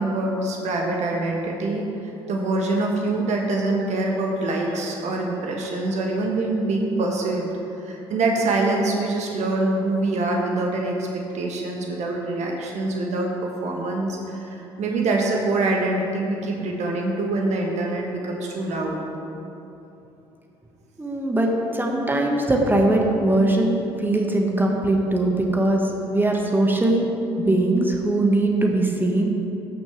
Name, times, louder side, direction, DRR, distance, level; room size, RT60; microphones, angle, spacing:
voice 1, 0.0-19.0, right 2 dB, 55° right, 0 dB, 1.2 m, -25 dB
voice 2, 21.0-27.1 27.4-29.3, right 1 dB, 15° right, 0 dB, 1.5 m, -21 dB
14.5 x 6.2 x 3.3 m, 3.0 s
figure-of-eight pair, 50°, 14 cm